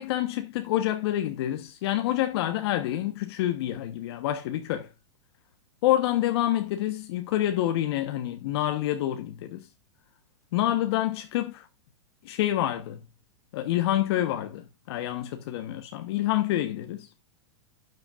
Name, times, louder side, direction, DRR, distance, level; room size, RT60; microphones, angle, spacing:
voice 1, 0.0-4.9 5.8-9.7 10.5-11.7 12.2-13.0 13.5-17.1, left 13 dB, 55° left, 1.1 m, -27 dB
12.0 x 8.1 x 2.5 m
hypercardioid pair, 145°, 15 cm